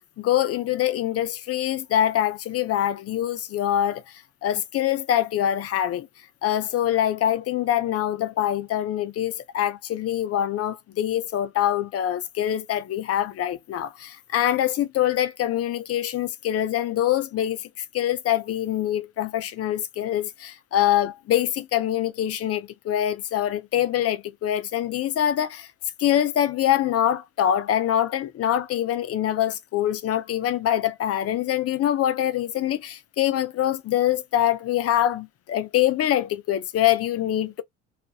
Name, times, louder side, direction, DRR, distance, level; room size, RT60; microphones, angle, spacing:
voice 1, 0.2-4.0 4.4-6.1 6.4-25.7 26.0-37.6, left 11 dB, 40° left, 0.5 m, -24 dB
2.4 x 2.1 x 2.6 m
supercardioid pair, 75°, 36 cm